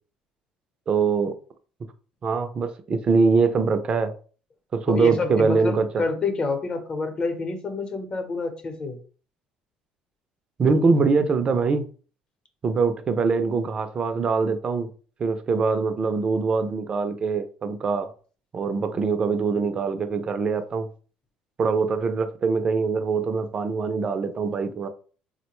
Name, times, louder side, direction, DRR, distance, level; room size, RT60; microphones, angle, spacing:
voice 1, 0.9-1.4 2.2-4.1 4.7-5.9 10.6-11.9 12.6-14.9 15.2-18.1 18.5-20.9 21.6-24.9, right 4 dB, 35° right, 0.5 m, -23 dB
voice 2, 4.9-9.0, left 3 dB, 35° left, 0.8 m, -28 dB
3.5 x 2.1 x 3.0 m
cardioid pair, 100°, 3 cm